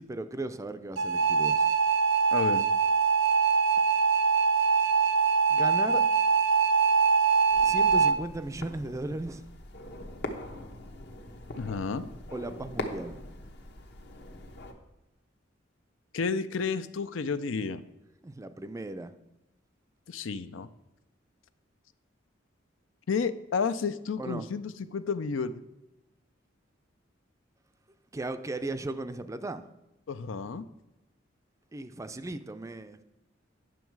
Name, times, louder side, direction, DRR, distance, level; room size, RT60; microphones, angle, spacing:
voice 1, 0.0-1.7 5.5-6.0 7.6-9.5 12.3-13.2 18.2-19.1 24.2-24.5 28.1-29.7 31.7-33.0, right 2 dB, 15° right, 11 dB, 0.4 m, -36 dB
sound 1, 1.0-8.1, right 5 dB, 80° right, 0.6 m, -23 dB
voice 2, 2.3-2.7 11.6-12.0 16.1-17.8 20.1-20.7 23.1-25.5 30.1-30.7, left 5 dB, 85° left, 13 dB, 0.5 m, -31 dB
sound 2, 7.5-14.7, left 1 dB, 60° left, 1.0 m, -42 dB
9.3 x 6.2 x 4.6 m, 0.96 s
head